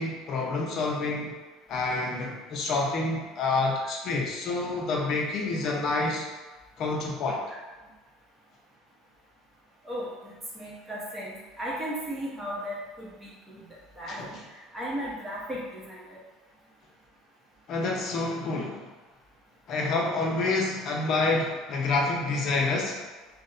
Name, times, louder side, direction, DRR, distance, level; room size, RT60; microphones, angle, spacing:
voice 1, 0.0-1.4 1.7-6.3 6.8-7.4 14.1-14.4 17.7-18.8 19.7-23.1, left 3 dB, 40° left, -1 dB, 0.5 m, -28 dB
voice 2, 9.8-13.6 14.0-16.2, equal, 15° right, -6 dB, 0.8 m, -36 dB
2.5 x 2.0 x 3.9 m, 1.2 s
cardioid pair, 160°, 0 cm